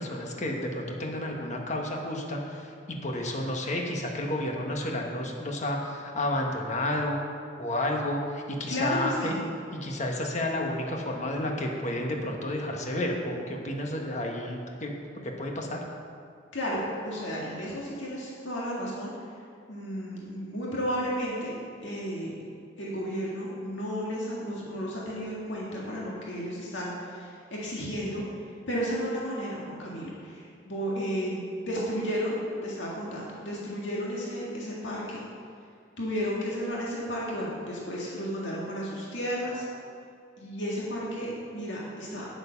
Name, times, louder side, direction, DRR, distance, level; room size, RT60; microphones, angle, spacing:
voice 1, 0.0-7.2 7.6-9.3 9.7-14.9 15.2-15.8, left 1 dB, 40° left, 1 dB, 1.3 m, -31 dB
voice 2, 8.7-9.4 16.5-19.1 19.7-22.3 22.8-28.2 28.7-35.2 36.0-39.7 40.4-42.3, equal, 80° left, -5 dB, 1.9 m, -33 dB
9.3 x 8.3 x 5.8 m, 2.3 s
head